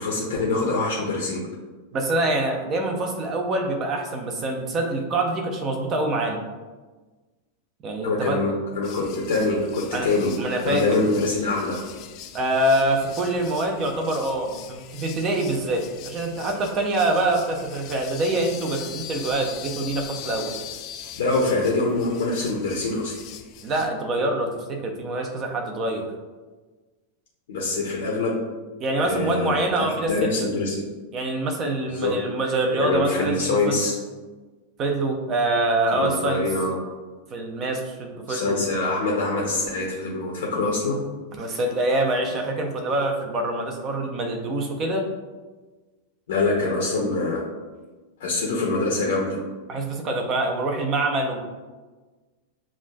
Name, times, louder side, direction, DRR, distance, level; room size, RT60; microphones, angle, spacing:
voice 1, 0.0-1.4 8.0-10.3 10.6-11.8 21.2-23.2 27.5-28.4 29.0-30.9 31.8-32.1 32.7-33.9 35.9-36.8 38.3-41.0 46.3-47.4 48.2-49.4, left 3 dB, 60° left, -2 dB, 0.7 m, -24 dB
voice 2, 1.9-6.4 7.8-8.4 9.9-10.1 10.4-11.0 12.3-20.5 23.6-26.0 28.8-30.3 31.1-33.8 34.8-36.4 37.3-38.6 41.4-45.1 49.7-51.4, right 2 dB, 30° right, 3 dB, 0.7 m, -25 dB
sound 1, 8.8-23.9, left 10 dB, 40° left, 0.3 m, -41 dB
7.1 x 2.5 x 2.2 m, 1.3 s
figure-of-eight pair, 90°, 0 cm